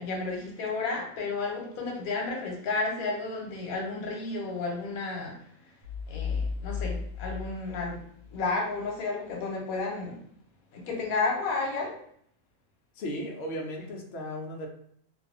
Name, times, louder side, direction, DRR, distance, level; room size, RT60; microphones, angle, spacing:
voice 1, 0.0-5.7 6.1-8.0 8.3-10.2 10.7-12.0, left 3 dB, 85° left, 0 dB, 1.1 m, -32 dB
sound 1, 5.8-8.5, left 5 dB, 80° right, 1.0 m, -34 dB
voice 2, 13.0-14.7, equal, 65° left, 1 dB, 0.7 m, -35 dB
2.6 x 2.2 x 2.5 m, 0.64 s
omnidirectional pair, 1.5 m